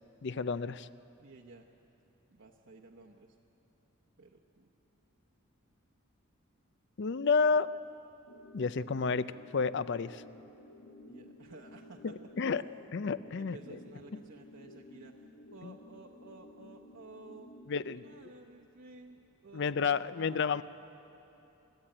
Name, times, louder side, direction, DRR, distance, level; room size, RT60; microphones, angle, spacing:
voice 1, 0.2-0.9 7.0-7.7 8.5-10.2 12.0-12.6 12.9-13.8 15.6-15.7 17.7-18.0 19.5-20.6, left 5 dB, 55° left, 15 dB, 0.5 m, -31 dB
voice 2, 1.2-1.7 2.3-3.4 4.2-4.7 11.1-12.1 13.4-20.6, right 3 dB, 60° right, -1 dB, 1.0 m, -54 dB
sound 1, 8.3-18.3, left 1 dB, 80° left, 1.8 m, -54 dB
28.5 x 13.0 x 8.8 m, 3.0 s
head